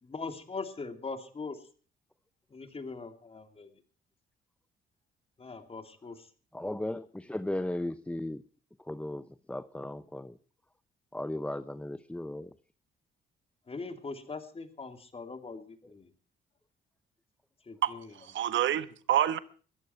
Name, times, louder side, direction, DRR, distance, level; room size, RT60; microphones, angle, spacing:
voice 1, 0.0-1.6 2.5-3.7 5.4-6.3 13.7-16.1 17.7-18.1, left 4 dB, 30° left, 2.9 m, -41 dB
voice 2, 6.5-8.4 8.8-10.4 11.1-12.5, left 1 dB, 5° left, 0.7 m, -36 dB
voice 3, 17.8-19.4, right 11 dB, 70° right, 1.4 m, -28 dB
22.0 x 14.0 x 4.5 m
cardioid pair, 90°, 20 cm